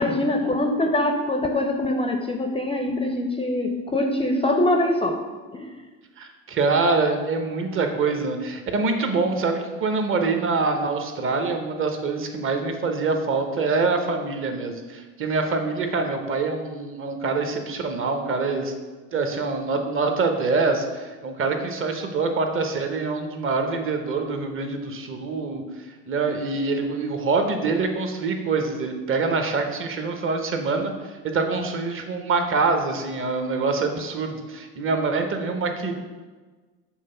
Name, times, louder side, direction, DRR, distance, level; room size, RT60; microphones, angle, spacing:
voice 1, 0.0-5.2 5.5-5.7, left 1 dB, 15° left, 4 dB, 0.5 m, -23 dB
voice 2, 6.2-18.7 19.1-25.6 26.1-35.9, right 4 dB, 35° right, 5 dB, 0.9 m, -25 dB
6.5 x 3.1 x 5.5 m, 1.4 s
hypercardioid pair, 80°, 37 cm